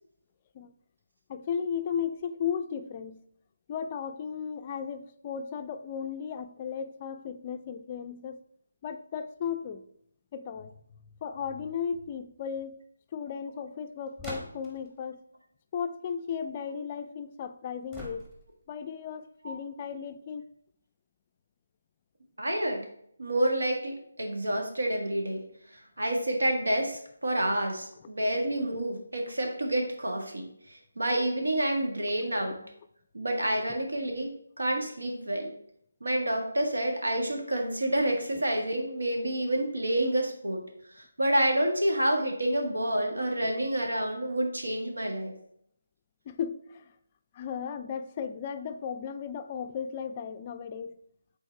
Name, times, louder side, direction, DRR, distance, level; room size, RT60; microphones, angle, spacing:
voice 1, 1.3-3.2 3.7-8.4 8.8-9.8 10.3-10.7 11.2-12.8 13.1-15.2 15.7-18.3 18.7-20.4 46.3-46.8 47.4-51.0, left 7 dB, 25° left, 9 dB, 0.3 m, -35 dB
sound 1, 14.2-14.9 17.9-18.6, equal, 10° right, 1.2 m, -42 dB
voice 2, 22.4-22.8 23.2-25.4 26.0-30.5 31.0-32.6 33.1-35.5 36.0-40.6 41.0-45.3, right 1 dB, 90° right, 2 dB, 1.7 m, -28 dB
6.1 x 4.0 x 4.5 m, 0.69 s
figure-of-eight pair, 160°, 0 cm